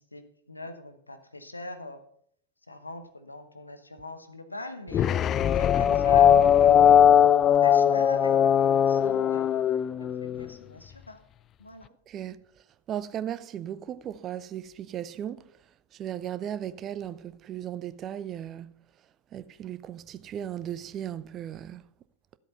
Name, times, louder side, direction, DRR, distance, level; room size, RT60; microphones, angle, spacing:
voice 1, 0.0-2.0 2.7-5.1 5.6-7.3 7.6-9.6 10.0-11.2 11.6-11.9, left 2 dB, 80° left, 1.0 m, -42 dB
sound 1, 4.9-10.5, left 9 dB, 30° left, 0.4 m, -20 dB
voice 2, 12.1-12.4 12.9-15.4 16.0-18.7 19.3-21.8, right 10 dB, 30° right, 0.6 m, -36 dB
13.0 x 8.1 x 5.6 m
figure-of-eight pair, 90°, 0 cm